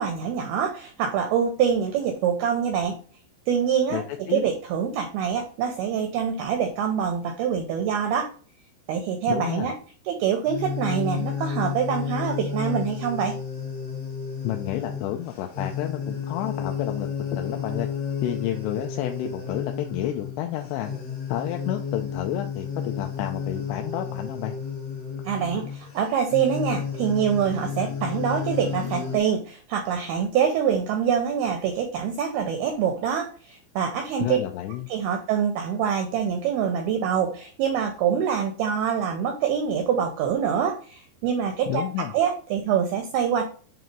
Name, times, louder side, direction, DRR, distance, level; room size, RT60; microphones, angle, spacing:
voice 1, 0.0-3.0 3.5-4.0 4.3-8.3 8.9-9.7 10.1-13.4 25.2-34.4 34.9-43.4, right 8 dB, 80° right, 4 dB, 2.2 m, -25 dB
voice 2, 3.9-4.5 9.3-9.7 14.4-17.9 18.2-20.9 21.3-24.6 34.2-34.9 41.7-42.1, left 12 dB, 80° left, 4 dB, 2.6 m, -30 dB
sound 1, 10.4-29.2, left 6 dB, 55° left, 1.8 m, -32 dB
7.6 x 2.8 x 5.2 m, 0.41 s
omnidirectional pair, 5.2 m